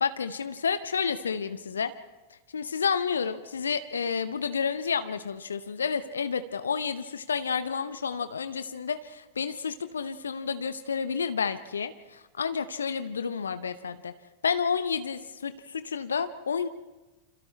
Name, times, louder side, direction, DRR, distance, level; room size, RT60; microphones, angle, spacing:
voice 1, 0.0-1.9 2.5-14.1 14.4-16.7, left 6 dB, 70° left, 12 dB, 0.9 m, -30 dB
29.5 x 27.0 x 3.3 m, 1.1 s
figure-of-eight pair, 90°, 0 cm